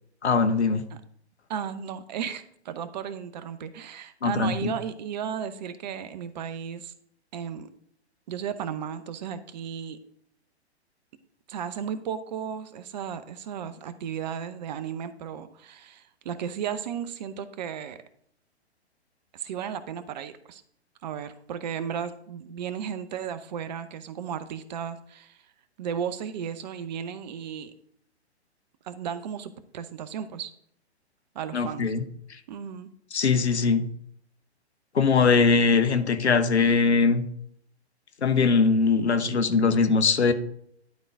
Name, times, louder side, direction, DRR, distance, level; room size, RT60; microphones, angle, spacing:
voice 1, 0.2-0.8 4.2-4.7 31.5-32.0 33.1-33.9 34.9-37.2 38.2-40.3, left 4 dB, 75° left, 10 dB, 1.0 m, -21 dB
voice 2, 1.5-6.9 7.3-7.7 8.3-10.0 11.5-18.0 19.3-20.6 21.0-25.4 25.8-27.7 28.8-30.5 31.3-31.9 32.5-32.9, right 8 dB, 40° right, 13 dB, 0.7 m, -34 dB
11.5 x 3.9 x 4.6 m, 0.68 s
figure-of-eight pair, 120°, 33 cm